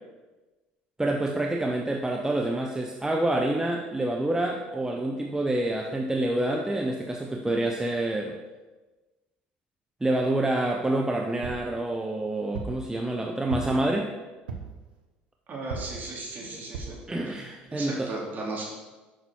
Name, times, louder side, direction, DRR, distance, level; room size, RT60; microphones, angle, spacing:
voice 1, 1.0-8.3 10.0-14.1 17.1-18.1, right 1 dB, 10° right, 1 dB, 0.7 m, -27 dB
sound 1, 11.4-11.7 12.5-12.8 13.5-13.9 14.5-14.8 15.7-16.0 16.7-17.0 17.6-17.7 18.0-18.1, right 5 dB, 90° right, 0.8 m, -36 dB
voice 2, 15.5-17.0 17.2-17.4 17.7-18.7, right 2 dB, 40° right, -2 dB, 2.5 m, -36 dB
6.9 x 5.9 x 4.5 m, 1.2 s
hypercardioid pair, 70°, 5 cm